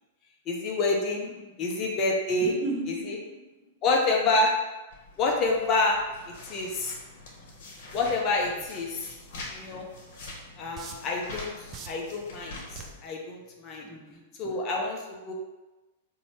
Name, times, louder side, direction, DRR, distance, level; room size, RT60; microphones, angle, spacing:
voice 1, 0.5-1.3 1.6-2.5 3.1-3.2 3.8-4.5 5.2-6.0 6.3-6.9 7.9-9.1 9.5-9.9 10.6-13.9 14.4-15.3, left 2 dB, 35° left, 0.8 m, -27 dB
voice 2, 1.3-1.7 2.4-3.7 13.8-14.4, right 2 dB, 5° right, 0.8 m, -38 dB
sound 1, 4.9-13.0, left 2 dB, 50° left, 1.2 m, -45 dB
sound 2, 10.0-10.1 10.8-11.2 11.7-12.1 12.8-13.1 13.7-13.9, right 7 dB, 30° right, 0.5 m, -41 dB
4.2 x 2.8 x 4.4 m
figure-of-eight pair, 100°, 0 cm